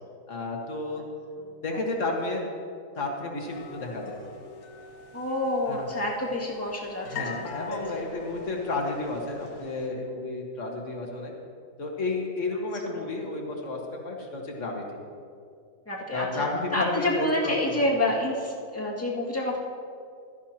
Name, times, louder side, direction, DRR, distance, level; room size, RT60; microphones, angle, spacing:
voice 1, 0.3-1.0 1.6-2.4 3.0-4.2 5.7-5.9 7.0-11.3 11.8-13.8 14.0-14.8 16.1-18.0, left 3 dB, 40° left, 0 dB, 1.8 m, -31 dB
sound 1, 3.5-9.9, left 5 dB, 75° left, 1.6 m, -43 dB
voice 2, 5.1-7.8 12.9-13.1 15.9-16.5 16.7-19.6, left 1 dB, 5° left, -5 dB, 1.9 m, -28 dB
16.5 x 13.0 x 2.9 m, 2.3 s
omnidirectional pair, 2.2 m